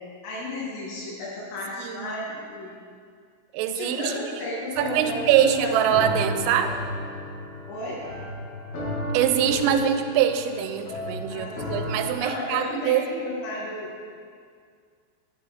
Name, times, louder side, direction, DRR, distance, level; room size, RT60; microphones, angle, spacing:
voice 1, 0.2-2.7 3.7-5.9 7.7-8.0 11.3-11.8 12.2-14.1, left 1 dB, 85° left, -6 dB, 5.0 m, -33 dB
voice 2, 1.8-2.1 3.5-4.2 4.8-6.8 9.1-13.3, right 9 dB, 90° right, 8 dB, 3.2 m, -23 dB
sound 1, 4.7-12.2, left 1 dB, 55° left, 2.2 m, -33 dB
10.5 x 8.1 x 4.2 m, 2.1 s
omnidirectional pair, 5.6 m